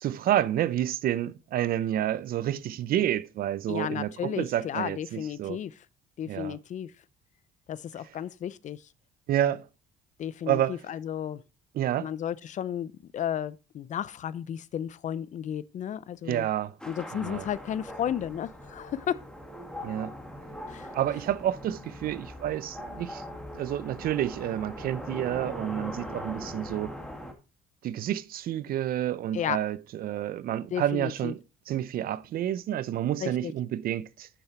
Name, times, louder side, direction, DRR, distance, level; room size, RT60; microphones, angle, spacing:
voice 1, 0.0-5.6 6.3-6.6 9.3-9.7 10.5-10.8 11.7-12.1 16.2-16.7 17.1-17.5 19.8-20.1 20.9-23.2 23.5-26.9 27.8-31.4 31.7-34.3, right 12 dB, 60° right, 0.6 m, -29 dB
voice 2, 3.7-5.8 6.2-6.9 7.7-8.8 10.2-11.4 12.0-16.5 16.9-19.2 20.7-20.9 29.3-29.6 30.7-31.3 33.2-33.5, left 9 dB, 45° left, 0.5 m, -33 dB
sound 1, 16.8-27.3, equal, 5° left, 2.2 m, -41 dB
8.9 x 7.0 x 4.3 m
cardioid pair, 110°, 17 cm